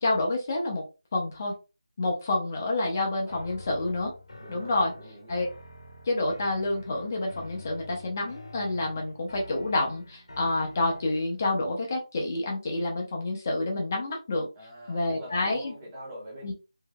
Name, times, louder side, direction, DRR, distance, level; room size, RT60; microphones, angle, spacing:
voice 1, 0.0-0.8 1.1-1.5 2.0-4.1 4.5-4.9 5.3-5.5 6.1-14.5 14.9-15.7 16.4-16.5, left 2 dB, 30° left, 0 dB, 0.8 m, -28 dB
sound 1, 3.3-11.4, left 2 dB, 80° left, 1.3 m, -47 dB
voice 2, 4.4-5.4 14.6-16.5, equal, 10° right, -5 dB, 1.1 m, -44 dB
3.7 x 3.2 x 2.3 m, 0.29 s
figure-of-eight pair, 170°, 3 cm